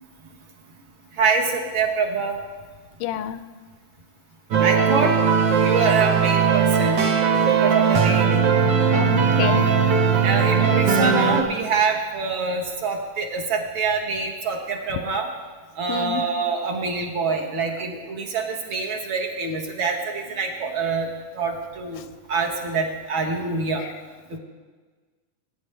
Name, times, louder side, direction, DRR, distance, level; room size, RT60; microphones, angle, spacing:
voice 1, 1.1-2.4 4.6-5.1 5.6-7.0 7.5-8.4 10.2-15.3 15.8-21.1 21.3-22.0 22.3-23.8 24.3-24.4, right 4 dB, 55° right, 1 dB, 1.6 m, -25 dB
voice 2, 3.0-3.4 8.9-9.7 15.9-16.2, left 11 dB, 90° left, 12 dB, 2.1 m, -27 dB
sound 1, 4.5-11.4, right 6 dB, 75° right, 1.0 m, -19 dB
19.0 x 9.7 x 3.3 m, 1.4 s
omnidirectional pair, 3.5 m